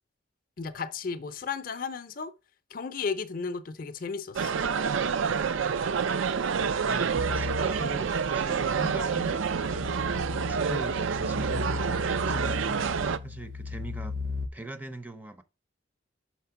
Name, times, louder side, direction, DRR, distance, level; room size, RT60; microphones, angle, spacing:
voice 1, 0.6-2.3 2.7-4.6, left 5 dB, 45° left, 0.5 m, -34 dB
sound 1, 4.4-13.2, right 6 dB, 80° right, 0.5 m, -28 dB
voice 2, 6.9-9.9 10.5-13.0 13.2-14.2 14.5-15.4, right 2 dB, 10° right, 0.5 m, -40 dB
sound 2, 7.2-14.5, left 4 dB, 45° right, 0.7 m, -37 dB
5.8 x 4.2 x 5.7 m
head